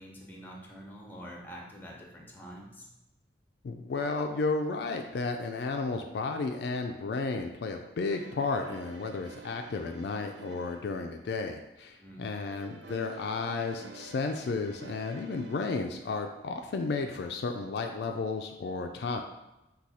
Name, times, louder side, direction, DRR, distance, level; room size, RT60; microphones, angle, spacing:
voice 1, 0.0-2.9 12.0-12.2, equal, 10° left, -1 dB, 0.7 m, -46 dB
voice 2, 3.6-19.2, left 4 dB, 65° left, 4 dB, 0.3 m, -33 dB
sound 1, 8.1-11.3 12.5-15.8, right 4 dB, 80° right, 0.5 m, -50 dB
4.7 x 2.3 x 4.1 m, 0.96 s
head